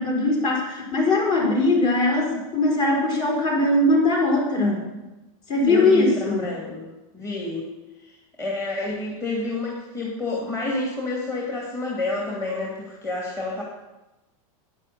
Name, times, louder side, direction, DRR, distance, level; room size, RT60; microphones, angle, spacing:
voice 1, 0.0-4.8 5.5-6.5, left 2 dB, 40° left, 0 dB, 4.6 m, -21 dB
voice 2, 5.7-6.9 7.1-7.7 8.0-8.1 8.4-13.6, left 2 dB, 15° left, -4 dB, 2.4 m, -29 dB
10.5 x 9.5 x 6.8 m, 1.0 s
supercardioid pair, 150°, 18 cm